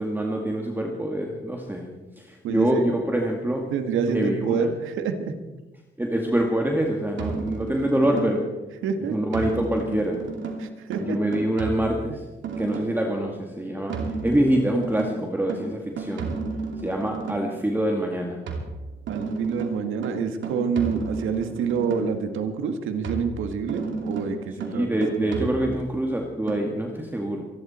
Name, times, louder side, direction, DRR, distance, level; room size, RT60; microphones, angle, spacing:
voice 1, 0.0-1.9 2.2-3.7 4.1-4.7 6.0-8.5 9.1-10.2 11.1-12.2 12.6-14.0 14.2-16.3 16.8-18.4 24.7-27.4, right 1 dB, 10° right, 1 dB, 2.2 m, -25 dB
voice 2, 2.4-2.8 3.7-5.3 8.8-9.2 10.6-11.2 12.1-12.2 19.1-24.9 25.2-25.7, right 6 dB, 85° right, 7 dB, 1.9 m, -27 dB
sound 1, 7.2-8.6 9.3-13.1 13.9-17.6 18.5-22.3 23.0-26.0 26.5-26.6, right 3 dB, 70° right, 2.8 m, -33 dB
26.5 x 11.5 x 4.4 m, 1.2 s
cardioid pair, 90°, 20 cm